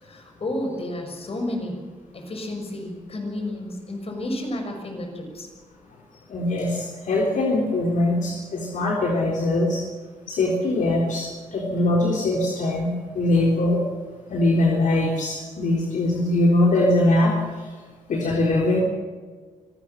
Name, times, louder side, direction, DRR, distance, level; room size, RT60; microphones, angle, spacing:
voice 1, 0.0-1.8 2.1-5.5, left 1 dB, 45° left, 4 dB, 6.5 m, -31 dB
voice 2, 6.3-9.8 10.3-13.8 14.3-17.3 17.6-17.7 18.1-18.8, left 1 dB, 70° left, -1 dB, 3.8 m, -22 dB
24.5 x 16.0 x 7.5 m, 1.4 s
cardioid pair, 85°, 14 cm